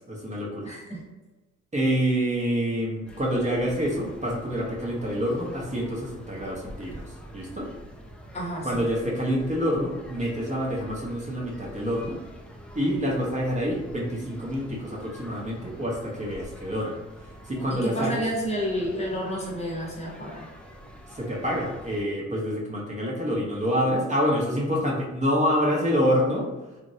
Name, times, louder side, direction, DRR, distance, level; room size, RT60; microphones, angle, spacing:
voice 1, 0.1-0.7 1.7-7.7 8.6-12.2 12.7-16.9 17.4-18.1 21.1-26.5, equal, 25° right, -4 dB, 0.8 m, -27 dB
voice 2, 0.6-1.0 8.3-8.8 17.7-20.5, equal, 20° left, -3 dB, 0.9 m, -30 dB
sound 1, 3.0-22.0, equal, 5° left, 0.4 m, -46 dB
3.0 x 2.5 x 2.6 m, 1.2 s
cardioid pair, 90°, 30 cm